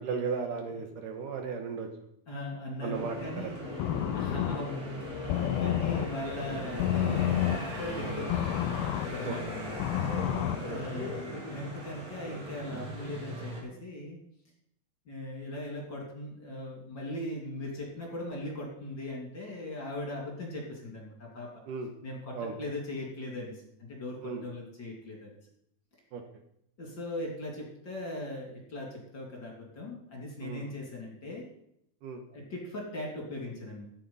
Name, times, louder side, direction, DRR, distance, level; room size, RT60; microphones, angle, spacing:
voice 1, 0.0-2.1 2.8-3.5 3.9-4.6 9.2-9.4 10.2-10.8 21.7-21.9 22.3-22.6 24.2-24.5 26.1-26.2 30.4-30.8 32.0-32.2, right 5 dB, 70° right, 5 dB, 2.4 m, -37 dB
voice 2, 2.3-3.6 4.1-4.8 5.2-8.6 9.0-9.4 10.6-14.2 15.1-21.5 22.0-25.4 26.8-31.4 32.3-33.9, left 1 dB, 35° left, -1 dB, 3.1 m, -39 dB
sound 1, 2.9-13.6, right 2 dB, 25° right, 3.1 m, -40 dB
sound 2, 3.6-11.2, left 12 dB, 80° left, 2.3 m, -31 dB
13.0 x 8.9 x 5.5 m, 0.75 s
omnidirectional pair, 4.3 m